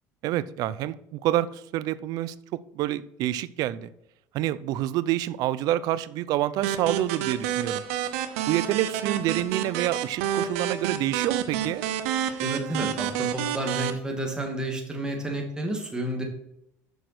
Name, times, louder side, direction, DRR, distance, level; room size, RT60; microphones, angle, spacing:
voice 1, 0.2-3.9 4.3-7.8 8.5-11.8, right 13 dB, 65° right, 17 dB, 0.6 m, -27 dB
sound 1, 6.6-13.9, right 10 dB, 90° right, 0.9 m, -29 dB
voice 2, 12.4-16.2, right 1 dB, 10° right, 1 dB, 2.5 m, -31 dB
7.0 x 6.3 x 6.0 m, 0.80 s
supercardioid pair, 105°, 7 cm